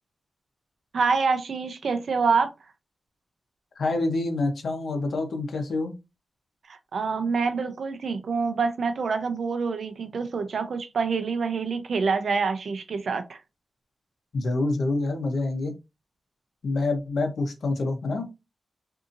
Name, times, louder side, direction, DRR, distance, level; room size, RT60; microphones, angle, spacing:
voice 1, 0.9-2.5 6.7-13.4, right 5 dB, 70° right, 0.4 m, -26 dB
voice 2, 3.8-5.9 14.3-15.8 16.6-18.3, left 2 dB, 75° left, 0.8 m, -27 dB
2.7 x 2.6 x 2.6 m
wide cardioid pair, 95°, 0 cm